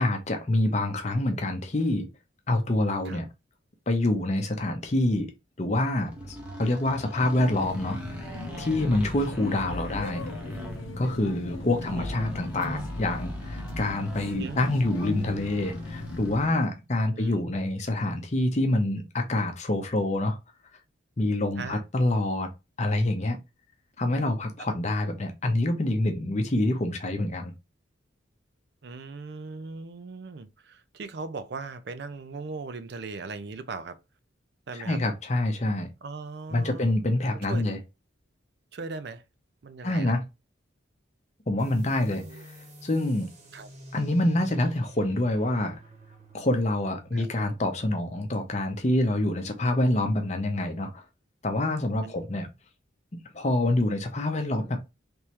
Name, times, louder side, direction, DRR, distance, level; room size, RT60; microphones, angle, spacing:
voice 1, 0.0-2.1 2.5-3.3 3.9-5.3 5.6-8.2 8.6-10.2 11.0-20.4 21.2-22.5 22.8-23.4 24.0-27.5 34.8-35.9 36.5-37.8 39.8-40.2 41.5-42.2 42.8-43.3 43.9-45.7 46.3-51.0 51.4-52.5 53.3-54.8, left 1 dB, 35° left, 0.6 m, -26 dB
sound 1, 5.9-16.7, left 1 dB, 5° right, 0.8 m, -40 dB
sound 2, 7.2-16.5, left 2 dB, 80° left, 0.7 m, -38 dB
voice 2, 17.0-17.4 21.6-21.8 24.6-24.7 28.8-34.0 34.7-35.0 36.0-37.0 37.3-37.7 38.7-39.2 39.6-40.1 42.1-42.5 43.5-43.7 47.1-47.3 52.0-52.1, right 4 dB, 55° right, 0.4 m, -39 dB
sound 3, 41.6-48.8, right 1 dB, 35° right, 1.0 m, -47 dB
3.4 x 3.1 x 2.9 m
head